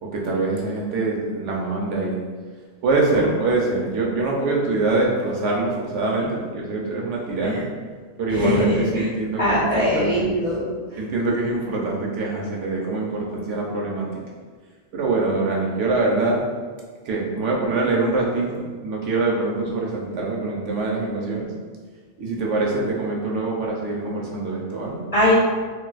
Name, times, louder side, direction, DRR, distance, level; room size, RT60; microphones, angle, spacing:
voice 1, 0.0-2.2 2.8-7.7 8.2-10.3 11.0-14.2 14.9-16.5 17.0-21.5 22.2-25.0, right 3 dB, 70° right, -2 dB, 0.9 m, -24 dB
voice 2, 8.3-9.1 9.4-10.7 25.1-25.3, left 1 dB, 45° left, -9 dB, 0.5 m, -21 dB
2.5 x 2.3 x 3.9 m, 1.5 s
omnidirectional pair, 1.3 m